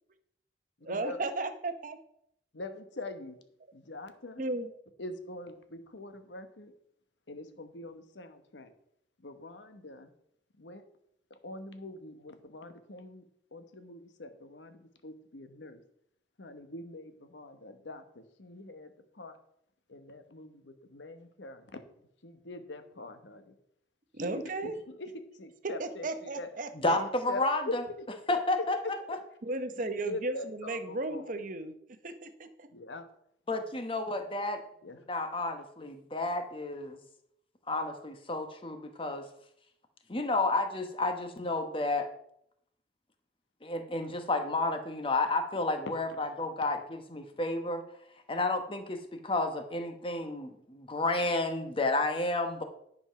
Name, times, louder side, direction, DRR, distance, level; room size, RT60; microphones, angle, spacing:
voice 1, 0.8-2.0 4.4-4.7 24.1-24.8 25.8-27.0 29.4-31.7 32.0-32.5, right 2 dB, 50° right, 9 dB, 0.8 m, -35 dB
voice 2, 2.5-3.3 3.7-4.4 5.0-6.7 7.3-8.7 9.2-10.1 10.6-10.8 11.4-13.2 13.5-15.8 16.4-19.4 19.9-21.8 22.2-23.5 24.2-24.7 25.0-26.5 26.9-28.1 28.6-28.7 29.1-29.2 29.8-31.3 32.7-33.0 34.8-35.0 45.9-46.0, left 2 dB, 90° left, 8 dB, 1.1 m, -43 dB
voice 3, 26.7-27.8 28.3-28.8 29.1-29.2 33.5-34.6 35.1-37.0 37.7-39.2 40.1-42.1 43.6-47.8 48.3-52.6, left 2 dB, 30° left, 6 dB, 1.2 m, -31 dB
10.5 x 5.4 x 5.8 m, 0.73 s
head